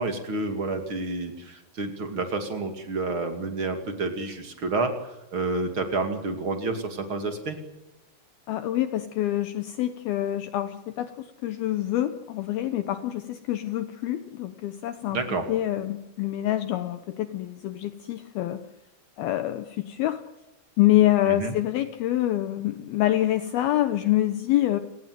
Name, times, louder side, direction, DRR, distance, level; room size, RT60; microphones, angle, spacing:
voice 1, 0.0-4.9 5.3-7.6 15.1-15.4 21.2-21.5, right 3 dB, 35° right, 6 dB, 2.1 m, -29 dB
voice 2, 8.5-15.2 15.5-18.6 19.2-20.2 20.8-24.8, left 14 dB, 80° left, 10 dB, 2.2 m, -26 dB
29.5 x 19.0 x 7.7 m, 0.94 s
omnidirectional pair, 5.8 m